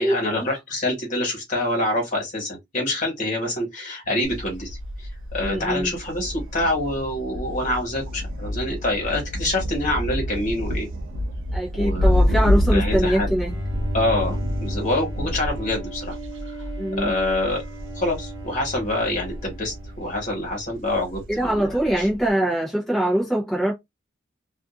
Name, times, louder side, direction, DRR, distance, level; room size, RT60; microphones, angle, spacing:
voice 1, 0.0-10.9 11.7-13.3 13.9-16.2 16.5-16.6 17.0-17.6 17.9-22.1, left 1 dB, 40° left, 1.4 m, -26 dB
Thunder, 4.2-22.3, left 1 dB, 80° right, 0.5 m, -28 dB
voice 2, 5.4-5.9 11.5-13.6 16.8-17.1 21.3-23.7, right 1 dB, ahead, 0.7 m, -23 dB
Bowed string instrument, 13.5-20.7, equal, 20° right, 1.1 m, -35 dB
2.5 x 2.4 x 2.4 m
head